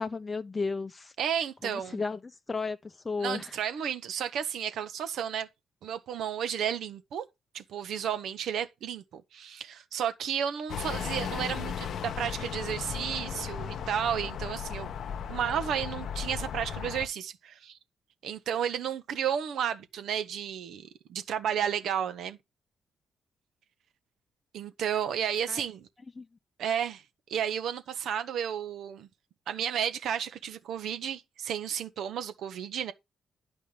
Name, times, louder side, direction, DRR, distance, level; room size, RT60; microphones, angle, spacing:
voice 1, 0.0-1.1 1.6-2.2 2.5-3.6 25.5-25.6 26.2-26.3, left 4 dB, 30° left, 0.9 m, -33 dB
voice 2, 1.2-2.0 3.2-5.5 5.8-7.2 7.5-14.9 15.3-17.8 18.2-22.4 24.5-25.9 26.6-27.0 27.3-29.1 29.5-32.9, right 8 dB, 70° right, 1.3 m, -32 dB
sound 1, 10.7-17.1, left 7 dB, 60° left, 1.1 m, -36 dB
11.0 x 5.4 x 5.4 m
hypercardioid pair, 40°, 0 cm